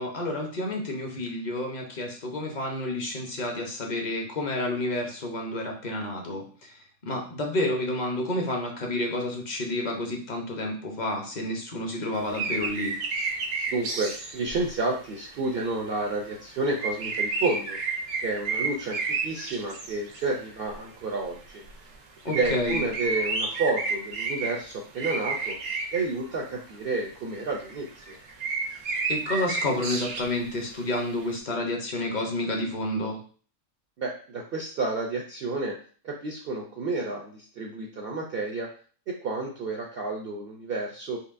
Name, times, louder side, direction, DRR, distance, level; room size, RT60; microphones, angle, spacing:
voice 1, 0.0-6.7 7.0-12.9 22.2-22.8 29.1-33.2, left 1 dB, 40° left, 1 dB, 0.7 m, -30 dB
sound 1, 12.3-14.9 15.2-16.3 16.6-20.2 20.5-20.8 21.1-21.2 21.7-21.8 22.2-24.6 25.0-26.2 27.3-30.5 30.8-30.9, right 4 dB, 85° right, 1.1 m, -31 dB
voice 2, 13.7-17.8 18.2-21.6 22.3-25.6 25.9-28.2 34.0-35.8 36.0-38.7 39.1-41.2, right 3 dB, 65° right, 1 dB, 0.6 m, -30 dB
4.5 x 2.8 x 2.5 m, 0.43 s
omnidirectional pair, 1.5 m